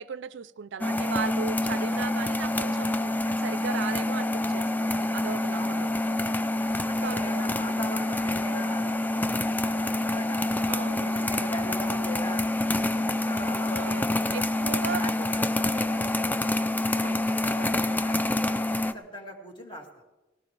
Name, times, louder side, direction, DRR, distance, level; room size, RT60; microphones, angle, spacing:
voice 1, 0.0-5.9 7.0-7.2 7.5-7.8 10.7-11.2 13.7-15.0 16.9-17.3, right 6 dB, 65° right, 16 dB, 0.4 m, -37 dB
sound 1, 0.8-18.9, left 1 dB, 10° left, 0.4 m, -27 dB
voice 2, 6.6-10.4 11.0-12.5 12.7-14.5 14.9-16.5 17.0-18.2 18.7-19.9, left 1 dB, 25° left, 1 dB, 2.4 m, -41 dB
18.5 x 17.0 x 3.3 m, 1.1 s
head